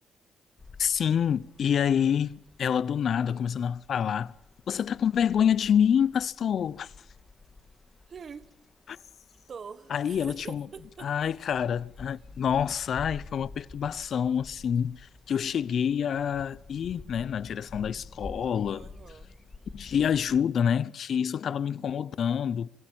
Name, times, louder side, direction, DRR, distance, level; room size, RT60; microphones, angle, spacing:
sound 1, 0.6-20.4, left 3 dB, 30° left, 2.0 m, -50 dB
voice 1, 0.8-2.3 2.6-4.3 4.7-6.9 8.9-9.0 9.9-10.7 11.0-18.9 19.7-22.7, left 8 dB, 60° left, 0.7 m, -27 dB
voice 2, 8.1-8.5 9.5-11.3 15.8-16.1 18.7-19.4, right 6 dB, 45° right, 1.4 m, -45 dB
25.5 x 16.0 x 8.9 m
cardioid pair, 90°, 0 cm